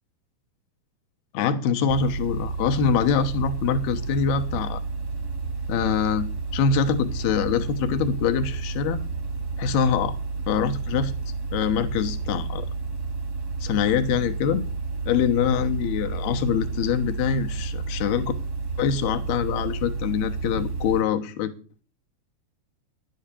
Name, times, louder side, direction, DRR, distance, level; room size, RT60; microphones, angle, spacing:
voice 1, 1.3-4.8 5.7-6.3 6.5-9.0 9.6-10.2 10.5-11.1 11.5-12.7 13.6-14.7 15.1-18.3 18.8-21.5, left 7 dB, 70° left, 7 dB, 2.8 m, -24 dB
sound 1, 1.9-21.0, right 4 dB, 45° right, 1.2 m, -31 dB
11.5 x 8.9 x 6.9 m, 0.37 s
omnidirectional pair, 5.2 m